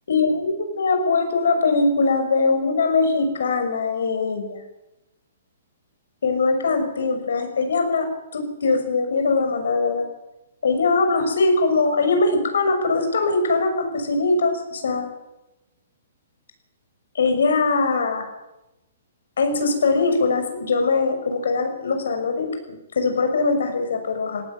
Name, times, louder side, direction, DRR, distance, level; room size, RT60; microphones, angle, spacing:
voice 1, 0.1-4.6 6.2-10.1 10.6-15.1 17.1-18.3 19.4-24.4, left 3 dB, 80° left, 6 dB, 6.2 m, -21 dB
18.0 x 18.0 x 9.2 m, 0.95 s
hypercardioid pair, 175°, 0 cm